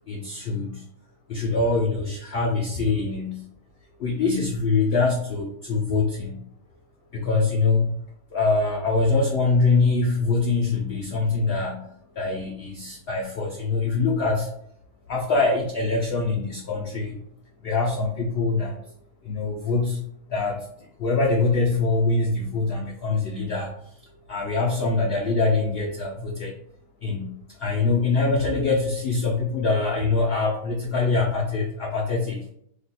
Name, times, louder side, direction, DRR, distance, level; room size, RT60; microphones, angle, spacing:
voice 1, 0.1-0.9 1.3-3.5 4.0-6.4 7.1-7.9 8.3-14.5 15.1-17.2 17.6-18.9 19.2-23.7 24.0-26.5 27.0-32.5, left 3 dB, 85° left, -1 dB, 0.5 m, -24 dB
2.7 x 2.2 x 4.0 m, 0.70 s
omnidirectional pair, 1.6 m